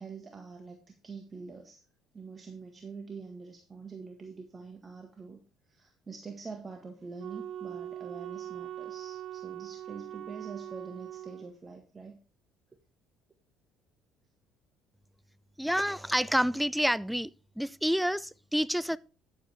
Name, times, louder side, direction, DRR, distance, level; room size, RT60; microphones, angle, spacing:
voice 1, 0.0-1.8 2.1-5.4 5.7-12.2, right 4 dB, 30° right, 1.6 m, -45 dB
Wind instrument woodwind instrument, 7.2-11.5, right 11 dB, 50° right, 0.8 m, -41 dB
voice 2, 15.6-17.3 17.6-19.0, equal, ahead, 0.4 m, -28 dB
10.0 x 8.2 x 3.5 m
hypercardioid pair, 60°, 0 cm